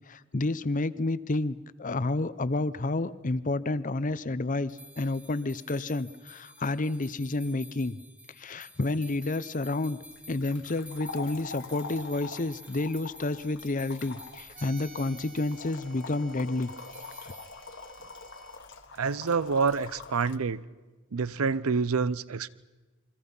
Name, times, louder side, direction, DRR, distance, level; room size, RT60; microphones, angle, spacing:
voice 1, 0.1-8.0 8.4-10.0 10.3-16.7 17.2-17.3, left 2 dB, 40° left, 0.7 m, -30 dB
sound 1, 4.7-15.8 16.8-17.5, equal, 5° right, 1.5 m, -51 dB
sound 2, 10.0-20.4, left 4 dB, 60° left, 1.7 m, -44 dB
sound 3, 14.5-18.6, right 3 dB, 40° right, 3.0 m, -52 dB
voice 2, 18.9-20.6 21.1-22.5, right 5 dB, 90° right, 0.6 m, -27 dB
29.0 x 23.5 x 5.5 m
head